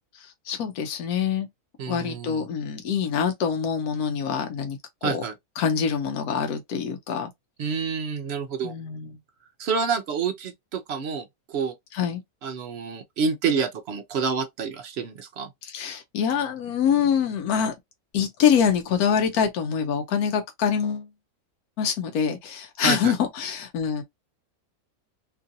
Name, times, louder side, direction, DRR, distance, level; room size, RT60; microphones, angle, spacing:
voice 1, 0.1-1.5 1.9-5.2 5.6-7.3 8.6-9.1 11.9-12.2 15.6-17.8 18.1-21.1 21.8-24.0, left 7 dB, 85° left, 1.1 m, -25 dB
voice 2, 1.8-2.4 5.0-5.3 7.6-8.7 9.6-11.7 12.4-15.5 22.8-23.1, right 5 dB, 65° right, 0.7 m, -28 dB
3.0 x 2.5 x 2.6 m
omnidirectional pair, 1.6 m